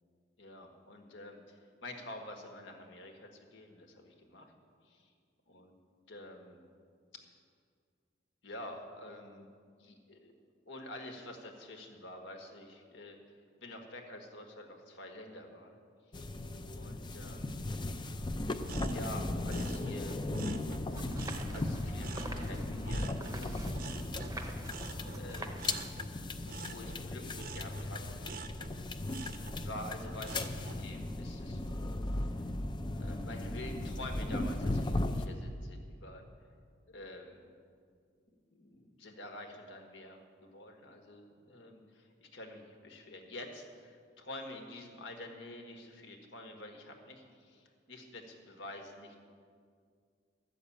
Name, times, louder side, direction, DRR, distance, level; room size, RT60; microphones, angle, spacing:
voice 1, 0.4-4.5 4.8-5.1 5.5-5.7 6.1-6.6 8.4-13.2 13.6-15.8 16.1-16.2 16.7-17.7 18.9-20.2 21.5-23.9 25.1-25.8 26.1-28.8 29.5-31.8 32.3-32.5 32.9-36.2 36.9-37.5 38.5-49.2, left 1 dB, 80° left, 3 dB, 1.6 m, -48 dB
sound 1, 16.1-35.3, left 2 dB, 25° left, 0.5 m, -37 dB
sound 2, 18.6-21.7 22.0-30.8 31.3-31.7, right 5 dB, 50° right, 0.6 m, -49 dB
sound 3, 20.9-25.9, right 2 dB, 20° right, 0.7 m, -47 dB
12.5 x 6.7 x 8.5 m, 2.1 s
head